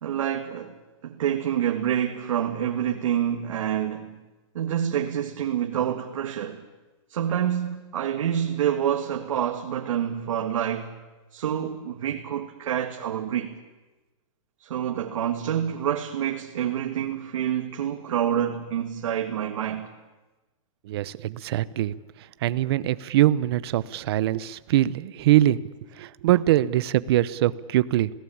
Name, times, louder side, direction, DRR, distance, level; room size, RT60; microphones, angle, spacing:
voice 1, 0.0-0.8 1.0-4.1 4.5-6.7 7.1-10.9 11.3-13.6 14.6-19.9, right 10 dB, 70° right, 2.0 m, -27 dB
voice 2, 20.9-21.9 22.4-25.6 26.0-28.1, right 14 dB, 50° right, 0.9 m, -22 dB
28.0 x 18.0 x 8.7 m
hypercardioid pair, 160°, 17 cm